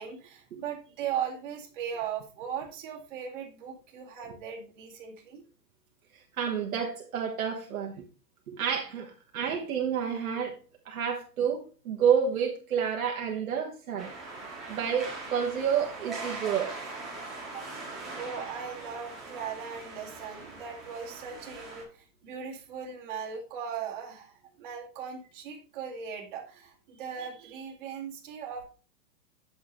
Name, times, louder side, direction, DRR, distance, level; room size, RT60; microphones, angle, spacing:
voice 1, 0.0-5.4 17.5-17.7 18.2-28.6, right 7 dB, 30° right, 2.2 m, -38 dB
voice 2, 6.4-7.9 8.5-10.5 10.8-11.6 11.8-14.1 14.7-16.7, right 7 dB, 60° right, 1.5 m, -29 dB
sound 1, 14.0-21.8, right 3 dB, ahead, 1.9 m, -41 dB
8.8 x 7.1 x 3.1 m
hypercardioid pair, 175°, 49 cm